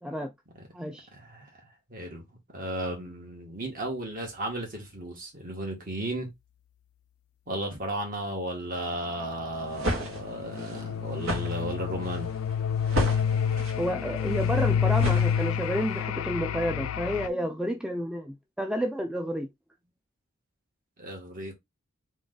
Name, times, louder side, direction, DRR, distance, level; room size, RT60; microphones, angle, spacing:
voice 1, 0.0-0.3 0.7-1.1 13.8-19.5, equal, 5° right, 0.4 m, -30 dB
voice 2, 1.1-1.5 1.9-2.2 2.5-6.3 7.5-12.3 21.0-21.5, right 1 dB, 40° right, 1.8 m, -34 dB
sound 1, 9.5-15.8, right 1 dB, 75° right, 2.2 m, -34 dB
sound 2, 9.7-17.3, left 7 dB, 85° left, 0.4 m, -28 dB
3.7 x 3.2 x 3.9 m
head